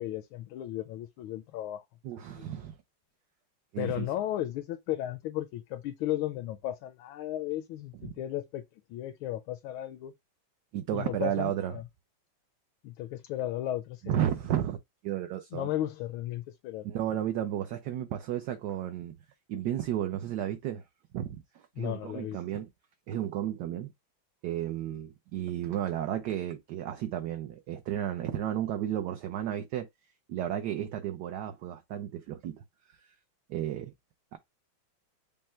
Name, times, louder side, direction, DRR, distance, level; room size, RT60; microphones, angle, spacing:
voice 1, 0.0-1.8 2.2-2.5 3.8-8.6 8.9-10.1 10.9-11.8 12.8-14.3 15.5-16.9 21.8-22.4, left 13 dB, 80° left, 1.4 m, -35 dB
voice 2, 2.0-2.8 3.7-4.1 8.0-8.2 10.7-11.7 14.0-14.8 15.0-15.7 16.8-19.2 19.5-20.8 21.1-22.7 23.1-23.9 24.4-29.9 30.3-32.6 33.5-33.9 34.3-34.4, right 11 dB, 70° right, 1.0 m, -33 dB
5.4 x 2.1 x 4.3 m
omnidirectional pair, 2.2 m